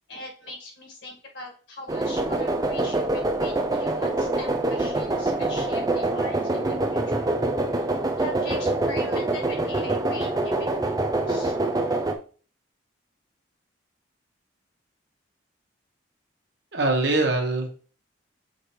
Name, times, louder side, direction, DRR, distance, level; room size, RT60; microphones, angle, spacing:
voice 1, 0.1-7.3 8.2-10.7 10.9-11.5, left 2 dB, 55° left, 0 dB, 1.9 m, -41 dB
sound 1, 1.9-12.1, right 2 dB, 20° right, 0.5 m, -25 dB
voice 2, 16.7-17.7, right 2 dB, 55° right, 2 dB, 1.3 m, -23 dB
6.5 x 4.6 x 3.3 m, 0.40 s
head